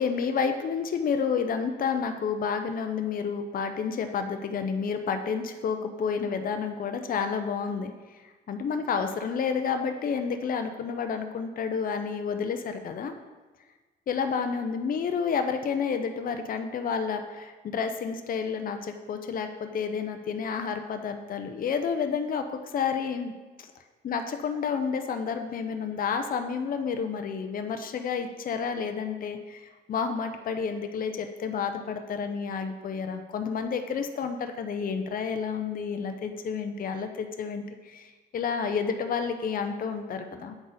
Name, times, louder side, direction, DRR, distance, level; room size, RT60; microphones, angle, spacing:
voice 1, 0.0-8.2 8.5-13.1 14.1-23.3 23.6-23.7 24.0-40.6, left 6 dB, 45° left, 7 dB, 0.6 m, -30 dB
8.0 x 4.0 x 3.9 m, 1.3 s
cardioid pair, 90°, 20 cm